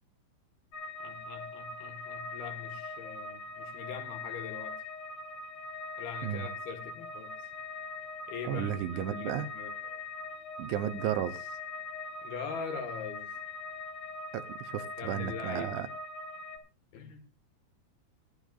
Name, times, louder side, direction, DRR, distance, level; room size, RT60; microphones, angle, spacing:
sound 1, 0.7-16.6, left 3 dB, 40° left, 4.1 m, -42 dB
voice 1, 1.0-4.7 6.0-7.3 8.3-9.7 12.2-13.3 15.0-15.8 16.9-17.2, left 6 dB, 65° left, 7 dB, 3.1 m, -42 dB
voice 2, 8.5-9.5 10.6-11.5 14.3-15.9, right 11 dB, 80° right, 11 dB, 3.0 m, -33 dB
24.5 x 12.5 x 2.4 m, 0.28 s
omnidirectional pair, 5.5 m